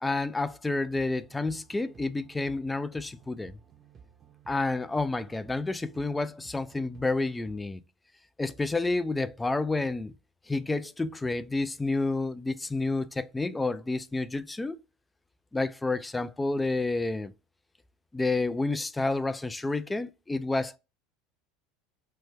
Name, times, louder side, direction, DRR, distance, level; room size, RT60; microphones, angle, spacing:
voice 1, 0.0-3.5 4.5-7.8 8.4-10.1 10.5-14.8 15.5-17.3 18.1-20.8, left 3 dB, 10° left, 0.3 m, -29 dB
sound 1, 0.9-7.6, right 7 dB, 30° right, 0.6 m, -55 dB
3.2 x 2.1 x 3.2 m
supercardioid pair, 95°, 0 cm